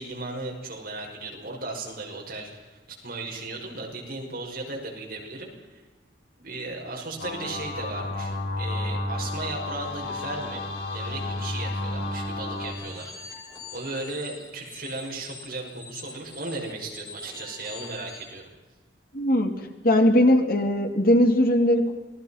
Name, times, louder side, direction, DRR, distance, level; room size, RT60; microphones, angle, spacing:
voice 1, 0.0-5.8 6.4-13.1 13.7-18.5, right 2 dB, 55° right, 0 dB, 6.0 m, -36 dB
sound 1, 7.2-12.7, left 2 dB, 75° left, 5.9 m, -31 dB
sound 2, 12.5-18.3, left 4 dB, 20° left, 6.0 m, -44 dB
voice 2, 19.1-19.5 19.8-21.9, left 1 dB, 55° left, 5 dB, 2.6 m, -19 dB
27.5 x 19.5 x 5.8 m, 1.3 s
head